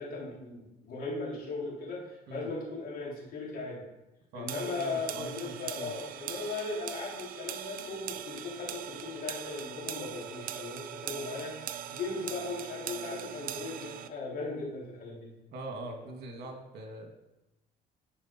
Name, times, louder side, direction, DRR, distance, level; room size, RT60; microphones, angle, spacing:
voice 1, 0.0-3.8 4.3-15.3, left 3 dB, 60° left, -4 dB, 2.8 m, -38 dB
voice 2, 4.3-5.9 15.5-17.1, right 1 dB, 75° right, 3 dB, 1.7 m, -42 dB
sound 1, 4.5-14.1, right 10 dB, 55° right, 0.5 m, -41 dB
10.0 x 4.7 x 4.2 m, 0.98 s
cardioid pair, 110°, 17 cm